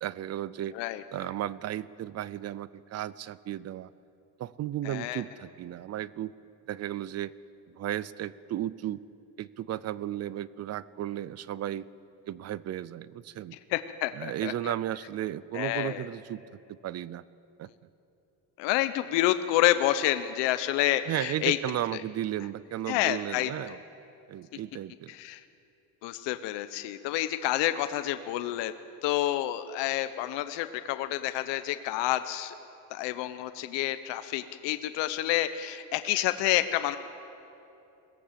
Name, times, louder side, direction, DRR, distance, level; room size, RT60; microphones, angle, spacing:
voice 1, 0.0-0.7 1.1-3.9 4.4-6.3 6.7-7.3 7.7-9.0 9.4-11.9 12.3-13.6 14.1-16.4 16.7-17.3 17.6-17.7 21.1-23.8 24.3-25.1, right 12 dB, 35° right, 19 dB, 0.5 m, -34 dB
voice 2, 4.8-5.2 13.7-14.7 15.5-16.0 18.6-21.6 22.9-23.5 25.1-25.4 26.0-28.7 29.0-32.5 32.9-37.0, left 14 dB, 75° left, 10 dB, 0.9 m, -28 dB
21.5 x 17.0 x 7.5 m, 2.8 s
cardioid pair, 130°, 44 cm